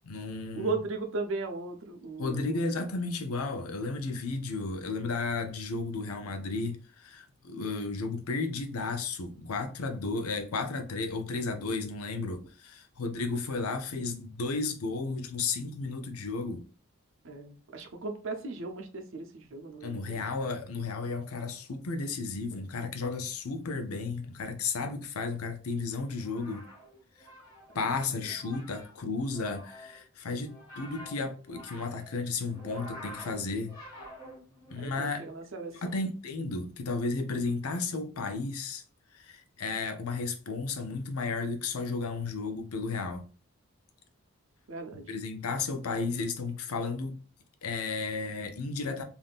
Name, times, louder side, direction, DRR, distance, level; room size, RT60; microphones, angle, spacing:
voice 1, 0.0-0.7 2.2-16.6 19.8-26.6 27.2-27.3 27.7-33.7 34.7-35.2 35.8-38.8 39.1-43.2 45.1-47.2 47.6-49.0, left 3 dB, 90° left, 0.6 m, -33 dB
voice 2, 0.5-2.7 17.2-20.2 27.7-28.4 34.8-36.1 44.7-45.1, right 3 dB, 60° right, 0.6 m, -37 dB
sound 1, 26.0-34.7, equal, 20° left, 1.5 m, -48 dB
3.5 x 2.6 x 2.4 m
head